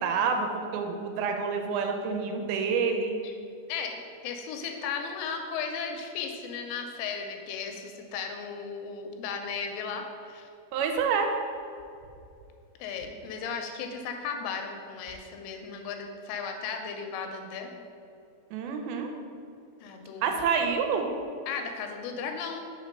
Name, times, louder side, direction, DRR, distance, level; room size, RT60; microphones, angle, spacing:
voice 1, 0.0-3.2 10.7-11.3 18.5-19.1 20.2-21.1, right 5 dB, 80° right, 4 dB, 2.4 m, -28 dB
voice 2, 3.7-10.5 12.8-17.7 19.8-20.4 21.5-22.7, left 6 dB, 85° left, 4 dB, 2.5 m, -35 dB
5.1 x 4.2 x 5.2 m, 2.5 s
omnidirectional pair, 4.6 m